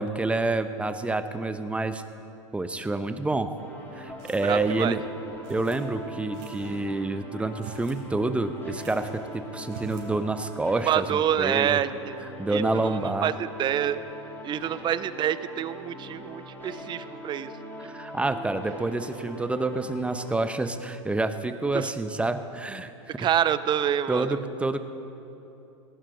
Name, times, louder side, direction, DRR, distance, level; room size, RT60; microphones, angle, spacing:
voice 1, 0.0-2.0 2.5-3.5 3.9-5.0 5.5-11.8 12.4-13.3 17.8-22.9 24.1-24.8, right 2 dB, 5° right, 9 dB, 0.8 m, -28 dB
sound 1, 3.5-20.4, equal, 15° left, 3.9 m, -42 dB
sound 2, 4.2-4.8 5.4-5.8 6.3-6.8 7.5-8.0 8.3-8.4 8.8-9.3 9.6-10.1, right 6 dB, 50° right, 4.0 m, -44 dB
voice 2, 4.4-5.0 10.9-12.1 12.5-14.0 14.4-17.5 17.8-18.0 21.7-21.9 23.2-24.4, right 10 dB, 30° right, 15 dB, 0.6 m, -27 dB
18.0 x 17.5 x 3.9 m, 3.0 s
hypercardioid pair, 100°, 16 cm